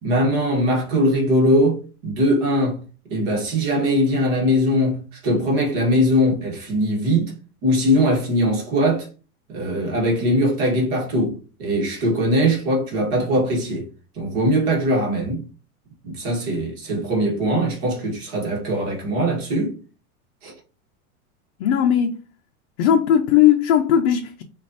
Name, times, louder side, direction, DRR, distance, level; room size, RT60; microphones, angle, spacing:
voice 1, 0.0-2.8 3.1-7.3 7.6-9.1 9.5-13.9 14.2-15.5 16.0-19.8 20.4-20.5, equal, 45° right, 1.6 m, -21 dB
voice 2, 21.6-22.1 22.8-24.4, left 9 dB, 55° left, 0.6 m, -17 dB
6.3 x 2.6 x 2.7 m
supercardioid pair, 160°, 45 cm